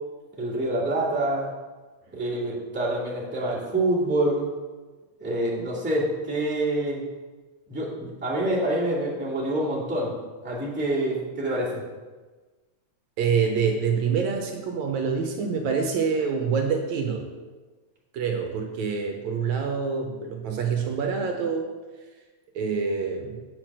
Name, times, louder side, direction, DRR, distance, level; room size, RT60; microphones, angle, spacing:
voice 1, 0.4-1.5 2.1-4.5 5.2-7.0 7.7-10.1 10.4-11.8, right 1 dB, 5° right, -8 dB, 2.2 m, -26 dB
voice 2, 13.2-17.3 18.1-21.7 22.6-23.4, right 6 dB, 75° right, 3 dB, 2.1 m, -26 dB
8.4 x 6.2 x 6.2 m, 1.3 s
omnidirectional pair, 3.3 m